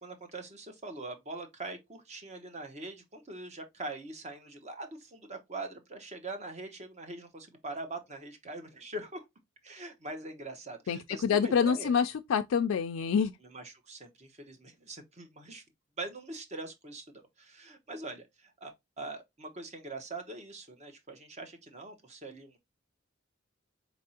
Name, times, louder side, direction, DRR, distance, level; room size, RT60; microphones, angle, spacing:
voice 1, 0.0-9.2 9.6-11.9 13.4-15.6 16.0-22.6, right 2 dB, 35° right, 0.9 m, -43 dB
voice 2, 10.9-13.3, left 6 dB, 75° left, 0.3 m, -27 dB
4.1 x 3.4 x 2.7 m
head